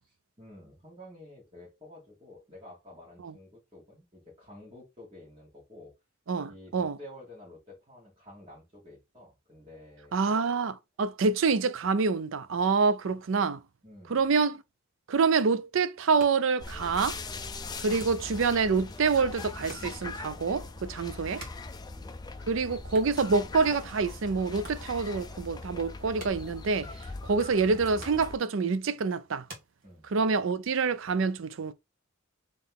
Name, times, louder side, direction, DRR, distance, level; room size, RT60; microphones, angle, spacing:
voice 1, 0.4-5.9 6.5-10.2 13.8-14.3 21.8-22.2 29.8-30.1, left 1 dB, 25° right, 2.0 m, -50 dB
voice 2, 6.3-7.0 10.1-13.6 14.1-14.6 15.1-17.2 17.8-21.4 22.5-26.9 27.2-29.5 30.1-31.7, right 4 dB, 65° right, 0.4 m, -27 dB
sound 1, 15.9-30.4, right 2 dB, 40° right, 1.7 m, -53 dB
sound 2, 16.6-28.4, left 3 dB, 20° left, 0.4 m, -41 dB
3.7 x 3.3 x 3.6 m
head